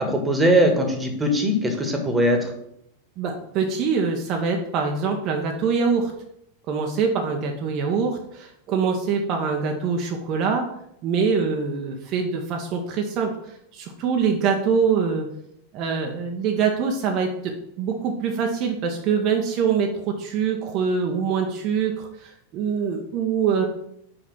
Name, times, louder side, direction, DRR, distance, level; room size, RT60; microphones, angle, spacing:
voice 1, 0.0-2.5, equal, 10° right, 4 dB, 1.5 m, -20 dB
voice 2, 3.2-6.1 6.7-10.7 11.0-13.4 13.7-15.3 15.7-23.6, right 5 dB, 40° right, 3 dB, 0.9 m, -24 dB
5.4 x 5.2 x 6.0 m, 0.75 s
figure-of-eight pair, 90°, 0 cm